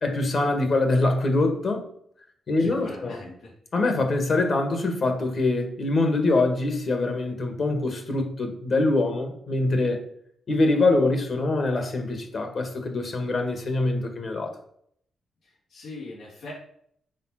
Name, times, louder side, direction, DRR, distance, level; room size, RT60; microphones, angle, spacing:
voice 1, 0.0-1.8 2.5-3.2 3.7-10.0 10.5-14.5, left 2 dB, 45° left, 5 dB, 1.9 m, -24 dB
voice 2, 2.6-3.5 15.4-16.5, left 2 dB, 90° left, -9 dB, 4.1 m, -41 dB
7.5 x 5.4 x 5.9 m, 0.67 s
wide cardioid pair, 130°, 0 cm